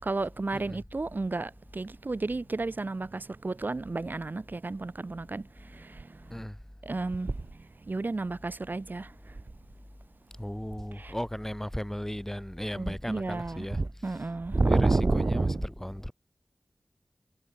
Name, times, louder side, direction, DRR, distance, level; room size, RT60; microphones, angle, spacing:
voice 1, 0.0-6.4 6.8-9.4 11.0-11.1 12.7-15.6, right 3 dB, 60° right, 5.7 m, -31 dB
voice 2, 10.4-14.2 14.6-16.1, equal, 10° left, 3.2 m, -36 dB
cardioid pair, 40°, 4 cm